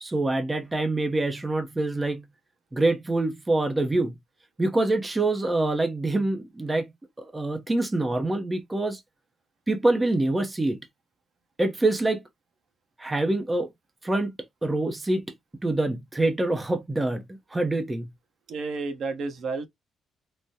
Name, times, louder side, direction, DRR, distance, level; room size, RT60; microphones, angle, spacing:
voice 1, 0.0-2.2 2.7-4.1 4.6-6.9 7.2-9.0 9.7-10.8 11.6-12.2 13.0-13.7 14.0-14.3 14.6-15.2 15.6-18.1, right 2 dB, 15° right, 0.6 m, -25 dB
voice 2, 18.5-19.7, right 4 dB, 65° right, 0.8 m, -31 dB
3.4 x 2.0 x 2.7 m
cardioid pair, 90°, 0 cm